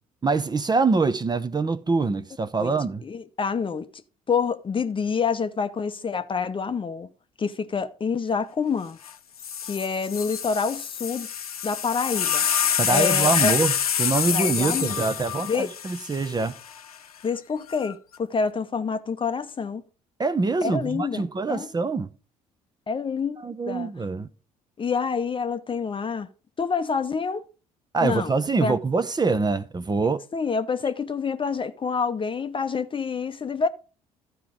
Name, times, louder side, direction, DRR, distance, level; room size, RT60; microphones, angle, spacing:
voice 1, 0.2-3.0 12.8-13.7 14.0-16.5 20.2-22.1 23.4-24.3 27.9-30.2, right 4 dB, 20° right, 0.8 m, -24 dB
voice 2, 3.0-3.9 4.3-7.1 7.4-9.0 9.6-11.3 11.6-12.4 12.9-13.5 14.3-15.0 15.5-15.7 17.2-19.8 20.6-21.7 22.9-23.9 24.8-26.3 26.6-27.4 28.0-28.3 28.6-28.8 30.3-33.7, left 5 dB, 30° left, 0.8 m, -27 dB
sound 1, 9.0-9.1 9.4-16.8 17.7-18.1, left 8 dB, 90° left, 0.5 m, -27 dB
13.0 x 4.8 x 5.0 m
figure-of-eight pair, 50°, 18 cm